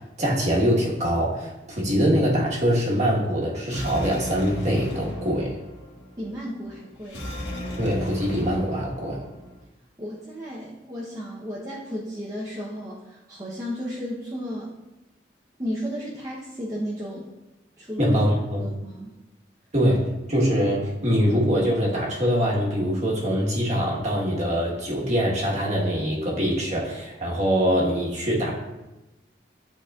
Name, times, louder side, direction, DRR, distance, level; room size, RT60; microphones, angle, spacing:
voice 1, 0.2-5.6 7.8-9.2 18.0-18.7 19.7-28.5, equal, 40° right, -4 dB, 1.4 m, -23 dB
sound 1, 3.6-9.6, equal, 85° left, 1.6 m, -36 dB
voice 2, 6.2-7.3 10.0-14.7 15.6-17.3 17.8-18.2 18.6-19.1, equal, 20° right, -7 dB, 0.8 m, -34 dB
10.5 x 4.1 x 2.4 m, 1.0 s
head